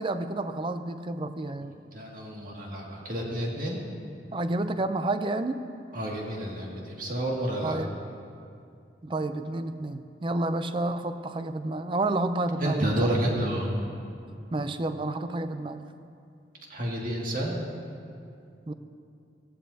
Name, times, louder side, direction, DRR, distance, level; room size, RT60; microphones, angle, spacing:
voice 1, 0.0-1.8 4.3-5.6 7.6-8.0 9.0-13.1 14.5-15.8 18.7-18.8, right 2 dB, 30° right, 10 dB, 0.5 m, -30 dB
voice 2, 1.9-3.8 5.9-7.8 12.6-13.7 16.7-17.6, right 1 dB, 50° right, -2 dB, 2.1 m, -30 dB
18.0 x 15.0 x 2.8 m, 2.5 s
head